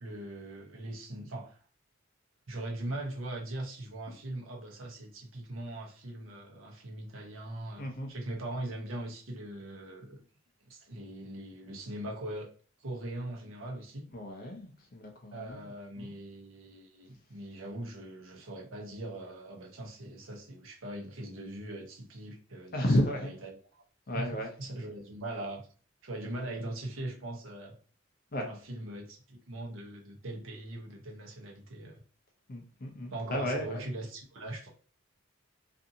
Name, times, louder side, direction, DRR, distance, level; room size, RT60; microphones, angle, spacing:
voice 1, 0.0-1.6 2.5-10.2 10.6-12.5 12.8-14.1 15.3-22.8 23.2-23.8 24.1-25.7 26.0-27.8 28.4-32.0 33.1-34.7, right 1 dB, 75° right, 0.8 m, -41 dB
voice 2, 7.8-8.1 14.1-16.1 22.7-23.3 24.1-24.5 28.3-28.5 32.5-33.9, equal, 45° left, 0.5 m, -33 dB
2.5 x 2.5 x 2.7 m
head